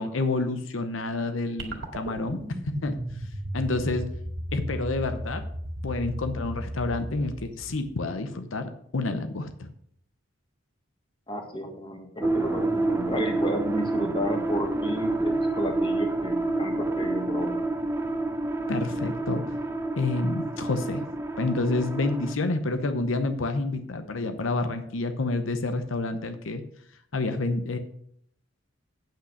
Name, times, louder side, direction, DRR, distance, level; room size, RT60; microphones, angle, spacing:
voice 1, 0.0-2.4 2.7-3.0 3.5-4.1 4.5-5.5 5.8-9.7 18.7-19.5 20.0-21.0 21.4-26.6 27.1-27.8, left 2 dB, 85° left, 8 dB, 0.8 m, -28 dB
sound 1, 1.6-8.1, equal, 65° right, 2.0 m, -35 dB
voice 2, 11.3-17.6, equal, 25° left, 4 dB, 1.5 m, -32 dB
sound 2, 12.2-22.3, right 2 dB, 15° right, 0.7 m, -28 dB
8.8 x 5.9 x 6.3 m, 0.68 s
head